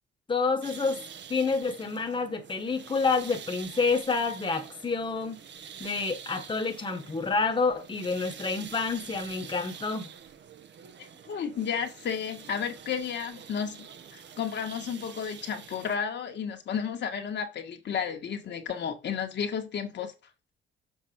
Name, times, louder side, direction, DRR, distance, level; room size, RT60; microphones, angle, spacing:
voice 1, 0.3-1.0 1.3-5.4 5.8-10.1, left 4 dB, 25° left, 1.4 m, -28 dB
sound 1, 0.6-16.0, right 7 dB, 65° right, 1.3 m, -46 dB
voice 2, 11.0-13.9 14.1-20.1, left 7 dB, 60° left, 1.8 m, -32 dB
7.2 x 4.1 x 6.0 m
cardioid pair, 90°, 20 cm